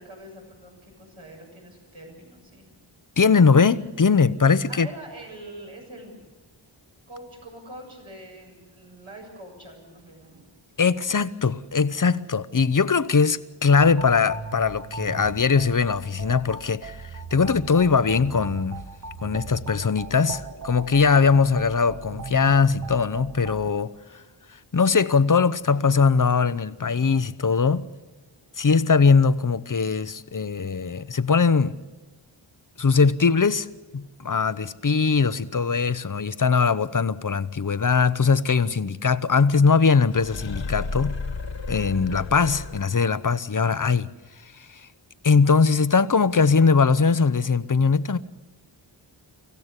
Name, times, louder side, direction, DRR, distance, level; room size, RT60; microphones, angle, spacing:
voice 1, 0.0-2.7 4.7-6.2 7.1-10.4, right 1 dB, 75° right, 7.2 m, -44 dB
voice 2, 3.2-4.9 10.8-17.0 17.3-18.8 19.2-23.9 24.7-27.8 28.6-31.8 32.8-33.7 33.9-41.2 41.7-44.1 44.7-44.8 45.2-48.2, left 5 dB, 40° left, 0.8 m, -21 dB
sound 1, 13.8-23.7, right 4 dB, 35° right, 1.1 m, -39 dB
sound 2, 40.1-43.1, left 4 dB, 60° left, 1.4 m, -33 dB
25.0 x 15.5 x 8.2 m
wide cardioid pair, 60°, 49 cm